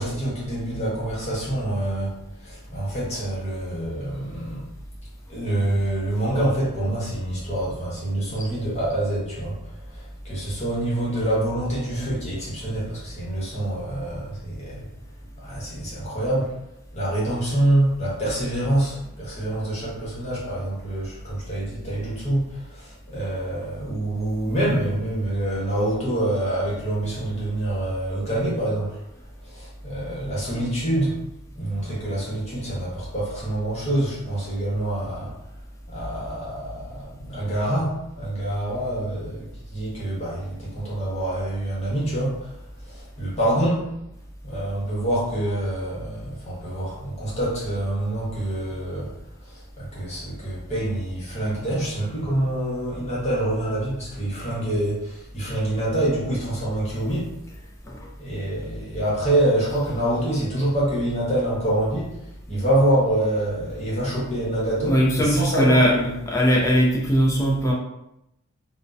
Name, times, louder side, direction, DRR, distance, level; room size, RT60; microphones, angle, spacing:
voice 1, 0.0-4.6 5.3-14.9 15.4-16.6 16.9-29.0 29.4-31.2 31.5-35.3 35.9-43.9 44.4-49.1 49.4-57.3 58.2-66.1, right 1 dB, 30° left, -7 dB, 0.9 m, -26 dB
voice 2, 64.9-66.0 66.3-67.7, equal, 15° left, -3 dB, 0.4 m, -19 dB
2.6 x 2.1 x 2.3 m, 0.84 s
head